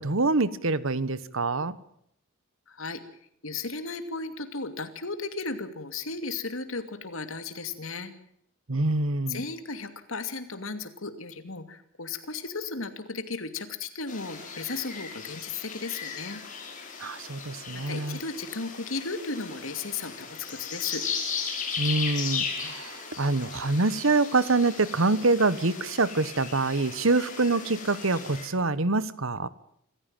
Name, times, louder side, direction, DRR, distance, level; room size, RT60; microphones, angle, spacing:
voice 1, 0.0-1.8 8.7-9.4 17.0-18.2 21.8-29.5, right 3 dB, 70° right, 17 dB, 1.2 m, -25 dB
voice 2, 2.7-3.0 3.4-8.1 9.3-16.4 17.7-21.0, left 4 dB, 70° left, 9 dB, 2.7 m, -35 dB
sound 1, 14.1-28.5, left 6 dB, 40° left, 5.7 m, -37 dB
27.0 x 15.0 x 9.0 m, 0.71 s
head